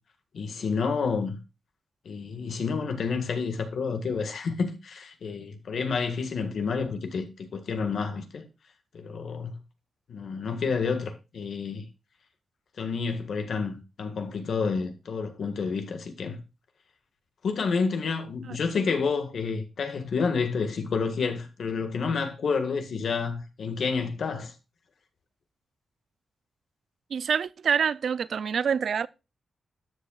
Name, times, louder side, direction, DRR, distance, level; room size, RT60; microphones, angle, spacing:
voice 1, 0.3-1.4 2.0-8.5 8.9-9.6 10.1-11.9 12.8-16.4 17.4-24.5, left 5 dB, 75° left, 1.7 m, -29 dB
voice 2, 27.1-29.1, right 7 dB, 70° right, 0.4 m, -26 dB
12.5 x 7.4 x 2.4 m
wide cardioid pair, 105°, 0 cm